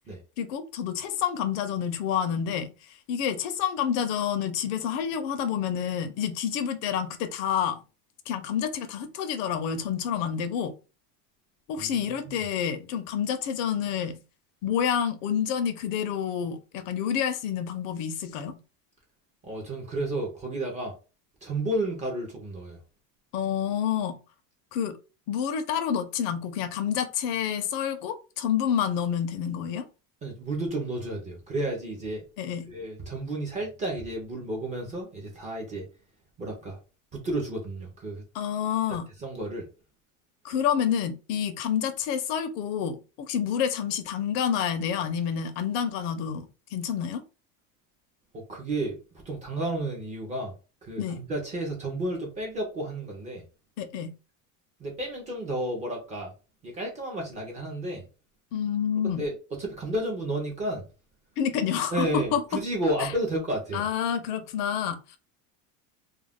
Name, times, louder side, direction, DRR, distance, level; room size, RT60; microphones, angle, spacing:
voice 1, 0.4-7.8 8.3-10.8 11.7-14.2 14.6-18.6 23.3-24.2 24.7-25.0 25.3-29.8 32.4-32.7 38.3-39.0 40.4-47.2 51.0-51.2 53.8-54.1 58.5-59.2 61.4-62.4 63.0-63.1 63.7-65.2, left 8 dB, 60° left, 0.6 m, -28 dB
voice 2, 11.8-12.4 19.4-21.0 21.4-22.8 30.2-32.2 32.7-35.9 36.4-36.8 37.1-38.2 39.2-39.7 48.3-50.5 50.8-53.4 54.8-56.3 56.6-58.1 59.0-60.9 61.9-63.9, right 1 dB, 20° right, 0.4 m, -32 dB
2.4 x 2.1 x 3.4 m
cardioid pair, 165°, 42 cm